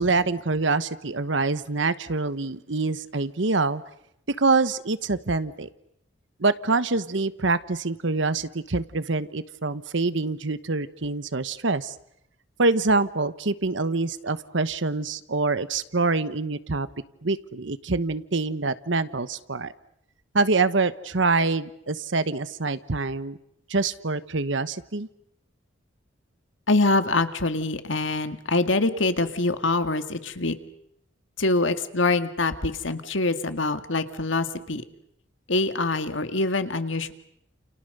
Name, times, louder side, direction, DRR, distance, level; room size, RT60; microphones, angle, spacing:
voice 1, 0.0-3.8 4.3-5.7 6.4-11.9 12.6-16.9 17.2-19.7 20.3-23.4 23.7-25.1, right 3 dB, 70° right, 13 dB, 1.1 m, -25 dB
voice 2, 26.7-30.6 31.4-34.8 35.5-37.1, left 2 dB, 75° left, 9 dB, 2.0 m, -24 dB
30.0 x 29.5 x 6.8 m, 0.75 s
head